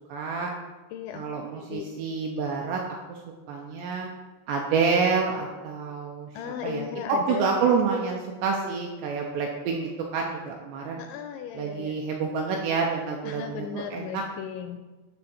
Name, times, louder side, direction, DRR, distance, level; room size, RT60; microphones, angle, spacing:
voice 1, 0.1-0.5 1.1-3.2 3.5-4.1 4.5-11.0 11.5-14.2, right 5 dB, 90° right, 0 dB, 2.5 m, -28 dB
voice 2, 0.9-1.2 1.7-1.8 6.4-7.5 11.0-11.9 13.2-14.8, left 8 dB, 85° left, 6 dB, 2.6 m, -36 dB
9.5 x 3.5 x 6.9 m, 1.3 s
omnidirectional pair, 5.6 m